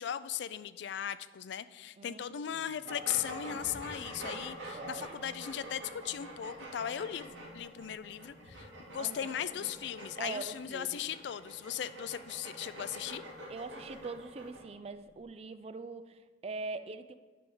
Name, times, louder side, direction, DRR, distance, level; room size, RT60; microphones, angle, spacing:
voice 1, 0.0-13.2, left 9 dB, 65° left, 15 dB, 0.3 m, -38 dB
voice 2, 2.0-3.0 4.7-5.3 9.0-9.7 10.2-11.0 13.5-17.1, right 3 dB, 30° right, 12 dB, 0.3 m, -43 dB
sound 1, 2.9-14.6, right 1 dB, 70° right, 1.8 m, -46 dB
sound 2, 3.4-15.3, equal, 45° left, 0.8 m, -60 dB
10.5 x 3.5 x 5.3 m, 1.5 s
head